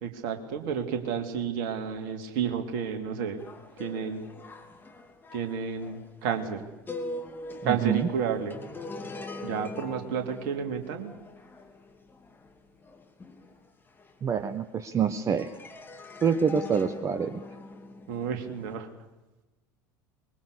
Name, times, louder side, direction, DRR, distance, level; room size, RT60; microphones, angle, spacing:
voice 1, 0.0-3.4 3.8-4.3 5.3-6.6 7.6-8.6 9.4-11.1 18.1-18.9, right 7 dB, 55° right, 5 dB, 2.9 m, -31 dB
sound 1, 3.4-15.0 15.4-18.7, left 2 dB, 20° left, 2.9 m, -43 dB
voice 2, 7.6-8.1 14.2-15.5 16.2-17.4, right 7 dB, 30° right, 12 dB, 1.1 m, -26 dB
24.0 x 22.0 x 6.9 m, 1.1 s
figure-of-eight pair, 70°, 11 cm